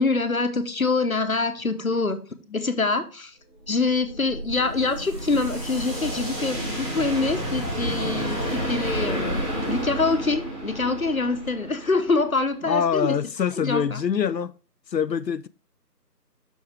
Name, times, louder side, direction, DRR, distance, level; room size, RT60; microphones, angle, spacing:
voice 1, 0.0-2.2 2.5-3.4 3.7-9.4 9.7-13.2 13.6-14.0, left 3 dB, 55° left, 1.1 m, -25 dB
sound 1, 3.6-12.6, equal, 5° right, 2.2 m, -30 dB
voice 2, 12.6-14.5 14.9-15.5, left 7 dB, 80° left, 0.6 m, -24 dB
7.9 x 6.3 x 3.5 m
figure-of-eight pair, 165°, 50 cm